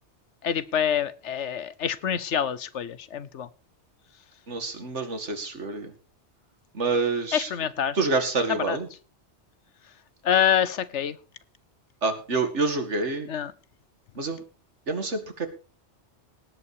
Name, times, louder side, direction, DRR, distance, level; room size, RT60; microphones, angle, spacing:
voice 1, 0.4-3.5 7.3-8.0 8.7-8.8 10.2-11.2 13.3-13.5, left 9 dB, 85° left, 16 dB, 1.2 m, -26 dB
voice 2, 4.5-5.9 6.7-7.5 7.9-8.9 12.0-13.3 14.2-14.4 14.9-15.5, right 3 dB, 90° right, 7 dB, 2.4 m, -27 dB
18.0 x 8.5 x 4.9 m, 0.36 s
omnidirectional pair, 1.2 m